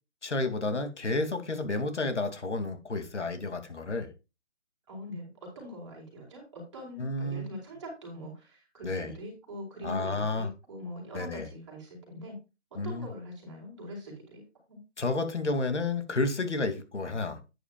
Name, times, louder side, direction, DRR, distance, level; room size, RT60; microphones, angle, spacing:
voice 1, 0.2-4.1 7.0-7.5 8.8-9.1 9.8-10.5 11.1-11.5 12.7-13.1 15.0-17.4, left 3 dB, 70° left, 2.8 m, -31 dB
voice 2, 4.9-12.4 12.7-14.8, equal, 25° right, 4.8 m, -42 dB
10.5 x 9.9 x 2.4 m
hypercardioid pair, 175°, 36 cm